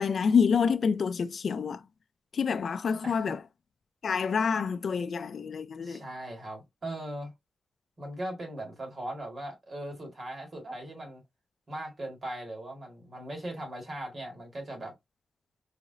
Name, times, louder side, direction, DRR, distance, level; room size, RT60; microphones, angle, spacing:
voice 1, 0.0-1.8 2.3-3.4 4.0-6.0, left 6 dB, 60° left, 0.3 m, -27 dB
voice 2, 3.0-3.4 5.8-7.3 8.0-11.2 11.7-14.9, right 1 dB, 40° right, 1.9 m, -39 dB
4.8 x 3.1 x 2.7 m
wide cardioid pair, 180°, 0 cm